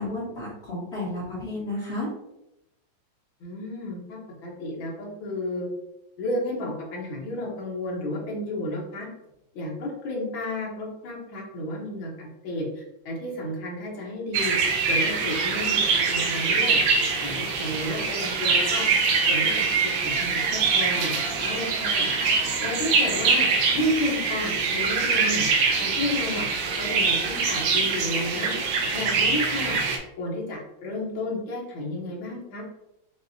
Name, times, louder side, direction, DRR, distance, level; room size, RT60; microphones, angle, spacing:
voice 1, 0.0-2.1, left 2 dB, 40° left, -9 dB, 1.4 m, -32 dB
voice 2, 3.4-5.7 6.2-9.1 9.5-14.6 14.9-16.8 17.2-18.8 19.3-21.2 21.4-22.1 22.6-23.5 23.7-25.5 25.8-26.5 26.8-28.5 28.9-29.8 30.2-32.6, left 1 dB, 85° left, -3 dB, 1.9 m, -32 dB
sound 1, 14.3-30.0, right 4 dB, 80° right, 1.5 m, -24 dB
6.3 x 2.5 x 2.6 m, 0.86 s
omnidirectional pair, 2.1 m